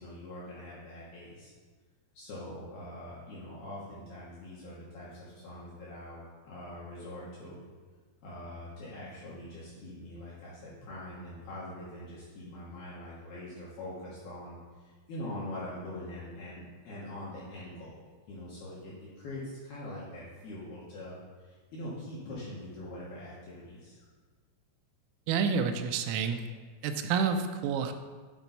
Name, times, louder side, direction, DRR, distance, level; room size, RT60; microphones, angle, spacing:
voice 1, 0.0-1.5 2.1-7.6 8.2-24.1, left 1 dB, 70° left, -8 dB, 2.4 m, -43 dB
voice 2, 25.3-26.4 26.8-27.9, right 6 dB, 85° right, 8 dB, 3.2 m, -29 dB
8.8 x 4.4 x 4.0 m, 1.5 s
omnidirectional pair, 5.9 m